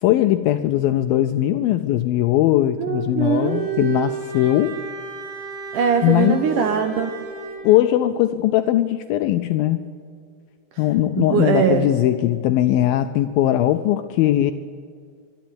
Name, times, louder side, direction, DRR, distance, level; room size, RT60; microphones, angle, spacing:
voice 1, 0.0-4.7 6.0-6.5 7.6-9.9 10.8-14.5, left 13 dB, 80° left, 9 dB, 2.1 m, -19 dB
voice 2, 2.8-3.6 5.7-7.1 11.2-11.9, right 7 dB, 70° right, 7 dB, 2.0 m, -21 dB
Bowed string instrument, 3.2-7.7, right 7 dB, 90° right, 5.2 m, -32 dB
24.0 x 11.5 x 9.4 m, 2.1 s
omnidirectional pair, 4.8 m